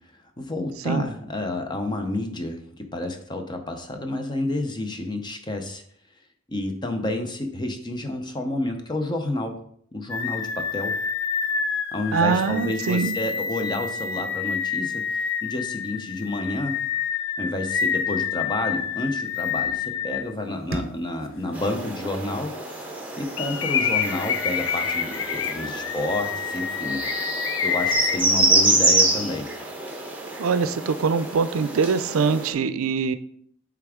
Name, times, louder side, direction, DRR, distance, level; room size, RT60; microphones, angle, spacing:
voice 1, 0.4-5.8 6.5-9.5 9.9-10.9 11.9-16.9 17.4-22.5 23.2-27.0 27.6-29.5, left 2 dB, 20° left, 5 dB, 0.6 m, -30 dB
sound 1, 10.1-20.2 20.8-20.9 23.4-28.2, left 6 dB, 70° left, 0.5 m, -28 dB
voice 2, 12.1-13.1 30.4-33.2, right 5 dB, 90° right, 12 dB, 0.4 m, -23 dB
sound 2, 20.7-23.6, right 2 dB, 45° right, 0.7 m, -39 dB
sound 3, 21.5-32.5, right 2 dB, 10° right, 0.9 m, -26 dB
8.2 x 3.5 x 3.6 m, 0.66 s
head